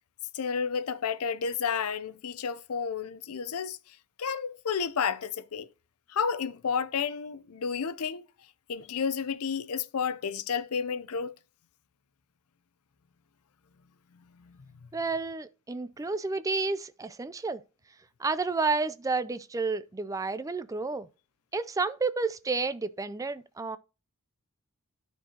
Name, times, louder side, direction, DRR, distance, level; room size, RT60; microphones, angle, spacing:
voice 1, 0.3-5.7 6.1-8.3 8.7-11.3 14.4-14.6, left 6 dB, 75° left, 0.6 m, -31 dB
voice 2, 14.9-17.6 18.2-21.1 21.5-23.8, right 4 dB, 15° right, 0.4 m, -30 dB
12.5 x 4.6 x 2.8 m
head